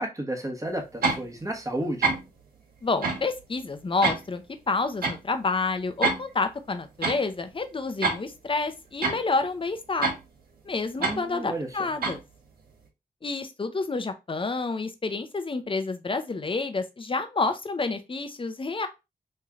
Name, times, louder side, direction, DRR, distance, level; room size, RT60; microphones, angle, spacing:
voice 1, 0.0-2.1 11.0-11.9, right 1 dB, 20° right, 1.3 m, -32 dB
sound 1, 1.0-1.2 2.0-2.3 3.0-3.2 4.0-4.2 5.0-5.2 6.0-6.2 7.0-7.2 8.0-8.2 9.0-9.2 10.0-10.2 11.0-11.2 12.0-12.2, right 4 dB, 80° right, 1.3 m, -25 dB
voice 2, 2.8-10.1 10.6-12.2 13.2-18.9, left 3 dB, 35° left, 0.7 m, -29 dB
3.2 x 2.8 x 3.6 m
cardioid pair, 60°, 15 cm